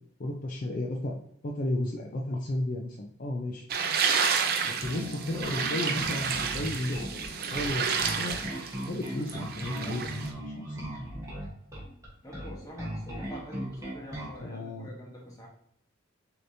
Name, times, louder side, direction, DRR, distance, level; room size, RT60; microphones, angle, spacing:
voice 1, 0.2-1.1 1.4-3.6 4.6-8.4 8.9-10.3 10.5-10.8 14.4-14.9, left 1 dB, 40° left, -1 dB, 0.4 m, -33 dB
sound 1, 3.7-10.3, right 6 dB, 45° right, 0.5 m, -30 dB
Bass guitar, 4.8-14.4, right 1 dB, 15° right, 1.2 m, -38 dB
voice 2, 12.2-15.5, equal, 15° left, -3 dB, 1.1 m, -45 dB
6.5 x 2.9 x 2.7 m, 0.68 s
head